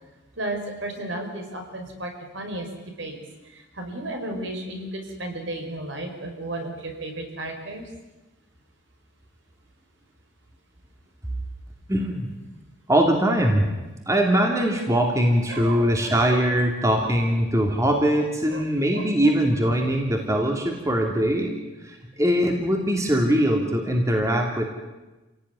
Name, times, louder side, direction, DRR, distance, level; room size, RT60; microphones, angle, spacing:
voice 1, 0.4-2.7 3.0-3.1 3.4-7.9 15.5-16.4 16.8-17.0 18.5-18.7 18.9-19.3, right 1 dB, 65° right, 3 dB, 5.4 m, -34 dB
voice 2, 11.9-12.3 12.9-13.7 14.1-21.5 21.8-24.7, equal, 15° right, 1 dB, 2.7 m, -22 dB
28.5 x 17.5 x 9.8 m, 1.1 s
head